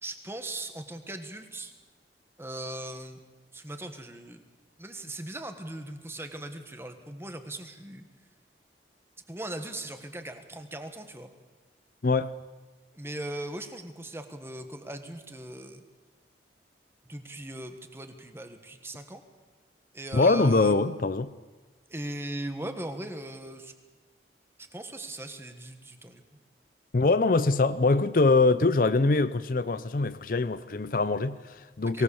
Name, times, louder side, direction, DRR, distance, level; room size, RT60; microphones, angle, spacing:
voice 1, 0.0-1.7 2.4-3.2 3.5-4.4 4.8-8.0 9.3-11.3 12.9-15.8 17.0-19.2 19.9-20.7 21.9-23.7 24.7-26.2 31.9-32.0, right 1 dB, 15° right, 1.5 m, -39 dB
voice 2, 12.0-12.3 20.1-21.3 26.9-32.0, left 3 dB, 50° left, 0.6 m, -23 dB
23.5 x 17.5 x 7.1 m
head